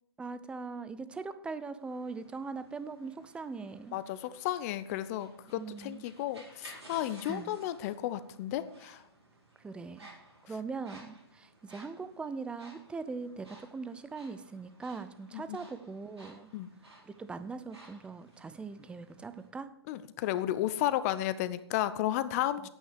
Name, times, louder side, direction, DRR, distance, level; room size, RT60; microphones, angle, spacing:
voice 1, 0.2-4.0 5.6-6.0 7.3-7.5 9.6-10.1 10.4-16.5 17.1-19.7, right 4 dB, 5° right, 13 dB, 0.6 m, -41 dB
sound 1, 1.8-19.5, right 2 dB, 90° right, 5.2 m, -57 dB
voice 2, 3.9-9.0 10.5-10.6 15.3-15.6 16.5-16.7 19.9-22.7, left 13 dB, 35° left, 14 dB, 0.7 m, -33 dB
9.3 x 8.9 x 6.6 m, 0.72 s
figure-of-eight pair, 125°, 14 cm